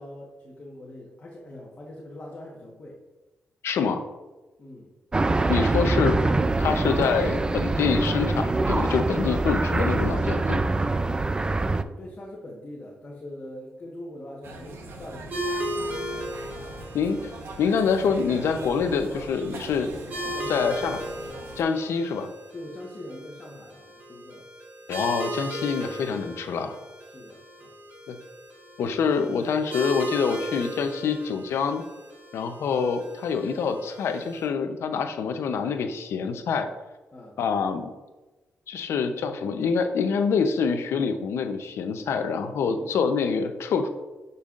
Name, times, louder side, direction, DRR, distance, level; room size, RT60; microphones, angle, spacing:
voice 1, 0.0-3.0 4.6-4.9 10.9-16.1 20.3-20.7 21.8-21.9 22.5-24.5 27.1-27.8 37.1-37.4 42.6-42.9, left 1 dB, 30° left, -3 dB, 1.2 m, -43 dB
voice 2, 3.6-4.0 5.5-6.2 6.6-10.6 16.9-17.3 17.6-19.9 20.5-21.0 21.6-22.3 24.9-26.8 28.1-28.2 28.8-31.8 32.3-36.7 37.4-37.9 38.7-43.9, left 5 dB, 90° left, 8 dB, 0.7 m, -26 dB
sound 1, 5.1-11.8, right 2 dB, 20° right, 0.3 m, -24 dB
sound 2, 14.4-21.6, right 2 dB, 70° right, 1.1 m, -41 dB
sound 3, 15.3-34.5, equal, 35° right, 1.8 m, -37 dB
10.5 x 5.5 x 2.5 m, 1.1 s
wide cardioid pair, 130°, 4 cm